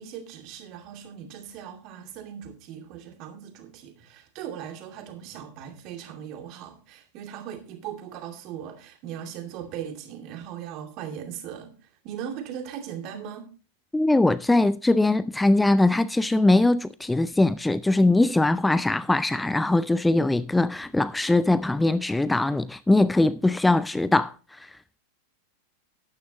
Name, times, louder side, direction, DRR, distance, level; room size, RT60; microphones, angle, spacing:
voice 1, 0.0-11.7 12.0-13.5, right 9 dB, 40° right, 2.5 m, -39 dB
voice 2, 13.9-24.7, left 2 dB, 5° left, 0.4 m, -21 dB
12.0 x 10.5 x 3.0 m
figure-of-eight pair, 90°, 0 cm